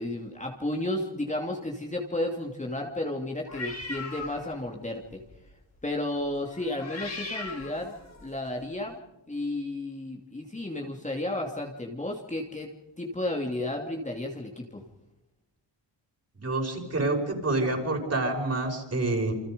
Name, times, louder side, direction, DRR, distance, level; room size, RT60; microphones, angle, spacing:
voice 1, 0.0-5.2 5.8-7.9 8.2-9.0 9.3-12.7 13.0-14.8, left 1 dB, 15° left, 0 dB, 2.8 m, -32 dB
sound 1, 3.5-4.7 5.0-5.3 6.5-8.4, left 3 dB, 35° left, 5.3 m, -39 dB
voice 2, 16.3-19.3, right 2 dB, 35° right, 2 dB, 6.4 m, -27 dB
28.5 x 25.0 x 5.4 m, 0.98 s
cardioid pair, 95°, 43 cm